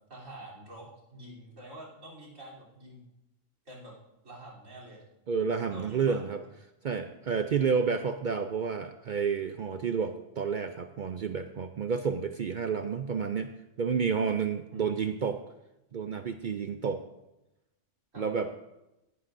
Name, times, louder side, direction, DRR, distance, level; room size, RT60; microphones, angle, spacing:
voice 1, 0.1-3.0 3.7-3.9 4.2-5.0 5.7-6.5 14.7-15.2 18.1-18.3, right 1 dB, 85° right, -3 dB, 3.8 m, -47 dB
voice 2, 5.3-6.4 6.8-13.5 13.8-15.4 15.9-17.0 18.2-18.5, right 6 dB, 60° right, 8 dB, 0.5 m, -30 dB
17.0 x 11.5 x 2.6 m, 0.94 s
omnidirectional pair, 1.3 m